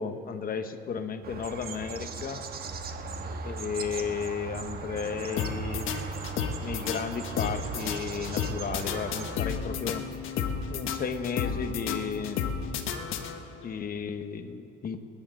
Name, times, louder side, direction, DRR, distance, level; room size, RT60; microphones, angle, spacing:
voice 1, 0.0-2.5 3.4-5.9 6.6-10.1 10.7-12.4 13.6-15.0, left 6 dB, 45° left, 8 dB, 1.1 m, -34 dB
sound 1, 1.2-9.4, right 5 dB, 50° right, 1.3 m, -38 dB
sound 2, 5.4-13.7, left 6 dB, 75° left, 1.1 m, -33 dB
29.0 x 9.7 x 3.8 m, 2.7 s
cardioid pair, 85°, 21 cm